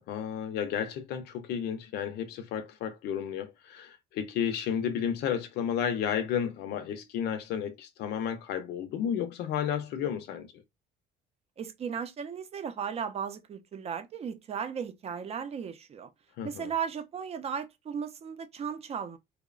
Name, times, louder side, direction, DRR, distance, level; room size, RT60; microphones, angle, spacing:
voice 1, 0.1-10.5 16.4-16.7, left 8 dB, 75° left, 0.5 m, -32 dB
voice 2, 11.6-16.1 16.4-19.2, right 7 dB, 40° right, 0.5 m, -36 dB
2.8 x 2.1 x 2.3 m
cardioid pair, 110°, 17 cm